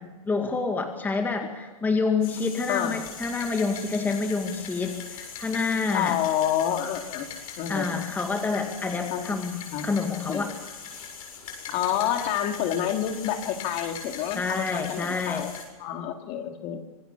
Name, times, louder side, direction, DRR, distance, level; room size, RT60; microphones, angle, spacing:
voice 1, 0.3-6.2 7.7-10.5 14.4-15.5, left 4 dB, 10° left, 4 dB, 2.0 m, -28 dB
sound 1, 2.2-15.6, left 6 dB, 65° left, 7.6 m, -41 dB
voice 2, 2.7-3.0 5.9-7.3 7.6-8.0 9.1-9.9 10.3-10.5 11.7-15.5 15.8-16.8, left 10 dB, 35° left, 5 dB, 2.7 m, -28 dB
26.0 x 20.0 x 6.9 m, 1.3 s
hypercardioid pair, 135°, 19 cm